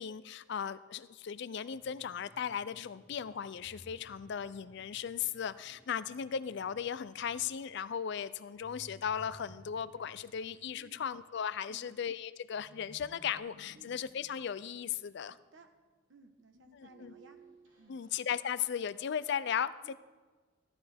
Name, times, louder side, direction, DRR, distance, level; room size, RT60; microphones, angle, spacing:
voice 1, 0.0-15.4 16.7-17.1 17.9-19.9, left 8 dB, 55° left, 16 dB, 0.4 m, -37 dB
sound 1, 1.7-8.2, equal, 5° right, 0.7 m, -65 dB
sound 2, 3.6-5.8 8.5-11.6 12.5-15.5 16.5-18.4, right 1 dB, 75° right, 3.1 m, -59 dB
voice 2, 10.7-11.0 11.7-11.9 13.7-13.9 15.3-15.7 16.1-17.4 17.8-18.0 19.8-19.9, right 2 dB, 60° right, 6 dB, 1.2 m, -59 dB
14.5 x 11.5 x 3.5 m, 1.3 s
head